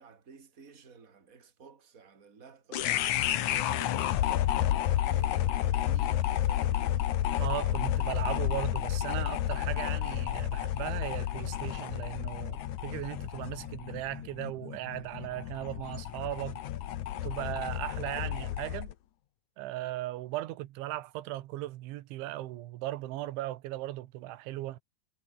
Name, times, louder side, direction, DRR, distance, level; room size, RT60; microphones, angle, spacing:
voice 1, 0.0-4.5 5.0-7.1, right 5 dB, 20° right, 3.2 m, -53 dB
sound 1, 2.7-18.9, left 12 dB, 75° left, 1.8 m, -31 dB
voice 2, 7.4-16.6 17.2-18.9 19.6-24.8, right 16 dB, 85° right, 3.6 m, -37 dB
omnidirectional pair, 5.2 m